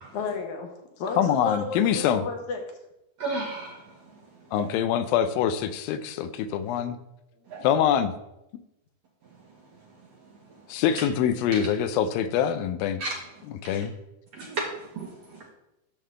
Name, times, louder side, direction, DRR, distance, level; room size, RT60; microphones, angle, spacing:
voice 1, 0.1-2.6, left 4 dB, 65° left, 2 dB, 2.2 m, -33 dB
voice 2, 1.2-2.2 4.5-7.0 7.6-8.1 10.7-13.0 13.6-13.9, left 9 dB, 85° left, 11 dB, 2.4 m, -24 dB
voice 3, 3.2-3.8 4.6-4.7 7.5-7.6 13.0-13.1 13.7-13.8 14.3-14.7 15.0-15.5, right 3 dB, 65° right, -1 dB, 1.7 m, -33 dB
10.5 x 3.7 x 6.6 m, 0.90 s
omnidirectional pair, 4.1 m